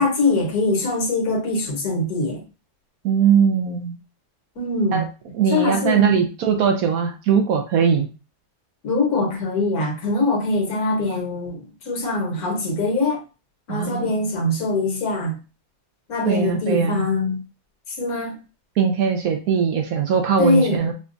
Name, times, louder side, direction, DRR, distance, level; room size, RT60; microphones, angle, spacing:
voice 1, 0.0-2.4 4.6-5.0 5.5-6.1 8.8-13.2 13.7-15.4 16.1-17.4 18.0-18.4 20.4-20.9, left 2 dB, 70° left, 1.5 m, -22 dB
voice 2, 3.0-4.0 4.9-5.0 5.3-8.1 13.7-14.3 16.2-17.0 18.8-20.9, right 7 dB, 70° right, 1.0 m, -20 dB
4.9 x 2.2 x 2.5 m
omnidirectional pair, 1.7 m